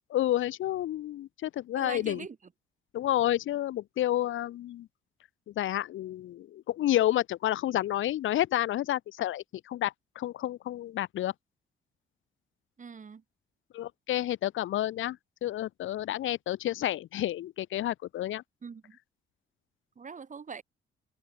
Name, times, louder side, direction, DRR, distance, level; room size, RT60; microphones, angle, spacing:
voice 1, 0.1-2.3 2.9-4.9 5.5-11.3 13.7-18.4, left 13 dB, 80° left, 3.9 m, -30 dB
voice 2, 1.8-2.4 12.8-13.2 18.6-19.0 20.0-20.6, right 5 dB, 40° right, 7.9 m, -42 dB
open air
cardioid pair, 90°, 20 cm